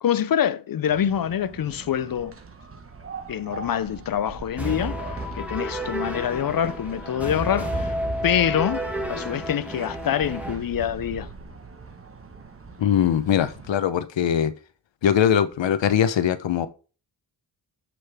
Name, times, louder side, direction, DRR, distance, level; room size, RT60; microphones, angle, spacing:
voice 1, 0.0-2.4 3.3-8.0 8.2-11.3, left 9 dB, 50° left, 0.5 m, -25 dB
sound 1, 0.9-13.7, right 4 dB, 30° right, 1.1 m, -42 dB
sound 2, 4.6-10.5, right 1 dB, 5° right, 1.9 m, -31 dB
voice 2, 12.8-14.5 15.0-16.7, left 9 dB, 85° left, 0.9 m, -21 dB
7.8 x 6.5 x 3.5 m
wide cardioid pair, 125°, 43 cm